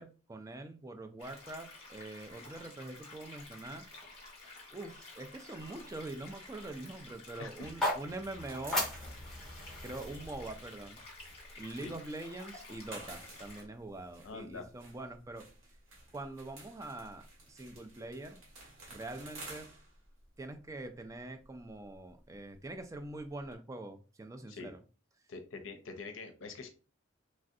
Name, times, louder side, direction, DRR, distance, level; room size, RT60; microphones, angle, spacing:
voice 1, 0.0-3.9 4.7-8.9 9.8-11.0 11.6-15.5 16.1-18.4 18.9-19.7 20.4-24.8, right 2 dB, 15° right, 7 dB, 0.3 m, -44 dB
sound 1, 1.2-13.6, left 2 dB, 30° left, 1.3 m, -52 dB
sound 2, 5.6-7.8 8.1-23.5, right 2 dB, 85° right, 1.3 m, -54 dB
voice 2, 7.4-7.7 11.7-12.0 14.2-14.6 24.5-24.7 25.3-26.7, left 3 dB, 70° left, 7 dB, 0.5 m, -45 dB
sound 3, 7.6-11.7, left 1 dB, ahead, 1.2 m, -38 dB
3.2 x 2.5 x 2.6 m, 0.35 s
head